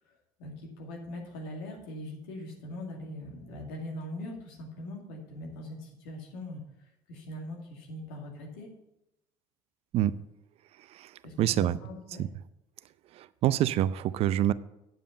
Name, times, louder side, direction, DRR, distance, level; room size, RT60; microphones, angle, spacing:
voice 1, 0.4-6.6 7.1-8.7 11.2-12.2, left 1 dB, 90° left, 0 dB, 2.2 m, -41 dB
voice 2, 10.9-11.8 12.2-12.3 13.1-14.5, right 12 dB, 60° right, 16 dB, 0.5 m, -27 dB
8.8 x 5.4 x 6.7 m, 0.85 s
supercardioid pair, 85°, 12 cm